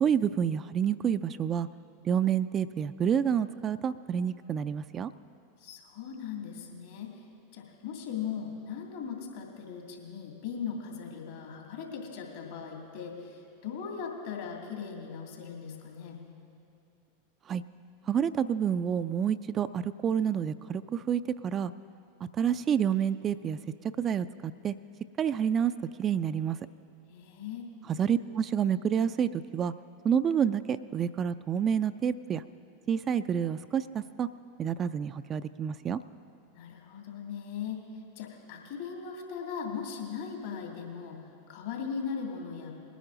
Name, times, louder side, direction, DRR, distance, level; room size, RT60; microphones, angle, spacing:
voice 1, 0.0-1.7 2.0-5.1 17.5-17.6 18.1-21.7 22.4-23.6 24.0-24.7 25.2-25.7 26.0-26.6 27.9-29.7 30.0-32.4 32.9-34.3 34.6-36.0, right 8 dB, 30° right, 12 dB, 0.3 m, -28 dB
voice 2, 5.6-7.2 7.5-16.2 27.1-27.6 36.5-37.8 38.2-41.2 41.5-42.7, left 6 dB, 65° left, 0 dB, 2.5 m, -38 dB
20.0 x 10.0 x 3.9 m, 2.6 s
figure-of-eight pair, 90°, 0 cm